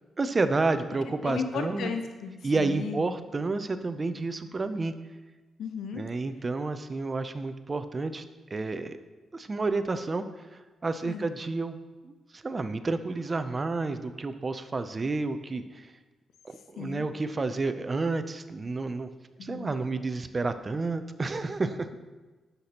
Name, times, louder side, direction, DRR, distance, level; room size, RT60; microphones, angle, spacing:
voice 1, 0.2-1.9 2.4-5.0 5.9-8.2 8.5-9.0 9.3-10.2 10.5-11.8 12.0-15.9 16.4-19.1 19.4-21.9, right 3 dB, 25° right, 10 dB, 0.4 m, -30 dB
voice 2, 1.2-3.1 5.6-6.1 11.0-11.3 16.8-17.1 19.4-19.8, left 5 dB, 70° left, 6 dB, 0.6 m, -35 dB
9.9 x 6.6 x 2.8 m, 1.2 s
wide cardioid pair, 160°, 0 cm